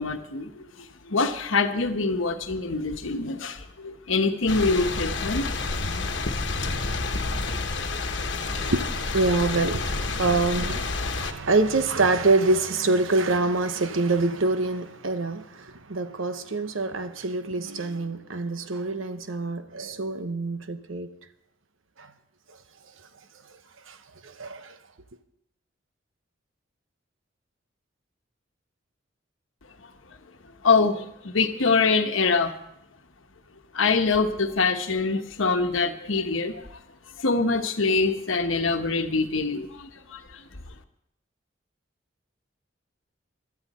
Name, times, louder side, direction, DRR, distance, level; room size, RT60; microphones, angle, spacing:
voice 1, 0.0-5.5 29.8-29.9 30.6-32.5 33.7-36.8 37.2-40.4, left 4 dB, 85° left, 1.2 m, -24 dB
sound 1, 4.5-11.3, left 3 dB, 60° left, 1.2 m, -29 dB
voice 2, 8.5-21.1 23.9-24.0 24.2-24.7, right 3 dB, 85° right, 1.0 m, -25 dB
17.5 x 12.0 x 4.2 m
head